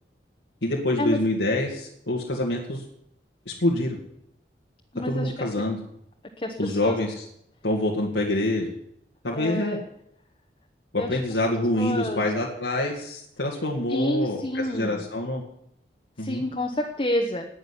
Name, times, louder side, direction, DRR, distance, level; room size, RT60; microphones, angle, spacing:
voice 1, 0.6-2.8 3.5-4.0 5.1-5.8 6.6-7.2 7.6-8.7 9.2-9.8 10.9-14.4 14.7-15.4 16.2-16.4, left 1 dB, 85° left, -2 dB, 2.3 m, -26 dB
voice 2, 4.9-5.5 6.4-7.0 9.3-9.8 10.9-11.2 11.8-12.2 13.9-15.0 16.2-17.5, left 1 dB, 30° left, 2 dB, 1.2 m, -28 dB
19.0 x 6.6 x 9.9 m, 0.74 s
head